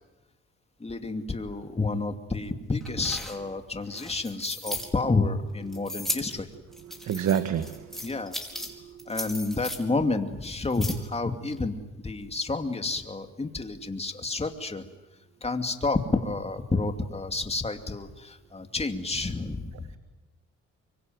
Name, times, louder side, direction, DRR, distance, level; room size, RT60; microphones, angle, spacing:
voice 1, 0.8-6.5 8.0-8.4 9.1-11.8 12.0-14.8 15.4-19.9, left 3 dB, 20° left, 6 dB, 2.7 m, -30 dB
sound 1, 2.8-4.9 5.7-6.3 6.7-8.7 9.0-9.8 10.4-11.1 11.5-11.6, left 1 dB, ahead, 4.8 m, -36 dB
voice 2, 7.0-8.0, right 9 dB, 65° right, 10 dB, 1.5 m, -27 dB
24.5 x 24.0 x 9.4 m, 1.1 s
cardioid pair, 90°, 30 cm